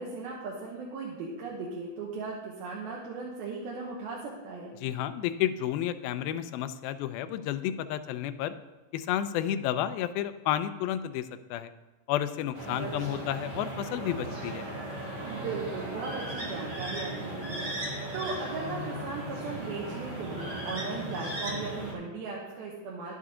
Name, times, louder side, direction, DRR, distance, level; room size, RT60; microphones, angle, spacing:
voice 1, 0.0-4.8 12.8-13.3 15.2-23.1, right 4 dB, 85° right, -3 dB, 3.0 m, -38 dB
voice 2, 4.8-8.5 8.9-11.7 12.1-14.7, left 11 dB, 85° left, 11 dB, 2.4 m, -31 dB
sound 1, 12.5-21.9, right 1 dB, 40° right, 1.8 m, -36 dB
10.5 x 8.2 x 3.7 m, 1.2 s
omnidirectional pair, 4.2 m